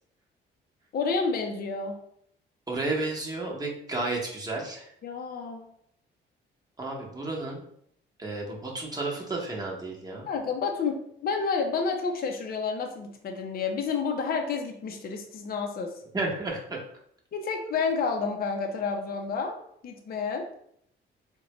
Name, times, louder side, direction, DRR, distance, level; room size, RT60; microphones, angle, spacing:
voice 1, 0.9-2.0 5.0-5.7 10.3-15.9 17.3-20.4, left 5 dB, 50° left, 3 dB, 0.6 m, -30 dB
voice 2, 2.7-4.9 6.8-7.6 8.2-10.3 16.1-16.8, right 2 dB, 20° right, -2 dB, 1.0 m, -32 dB
3.9 x 2.2 x 2.9 m, 0.69 s
cardioid pair, 90°, 20 cm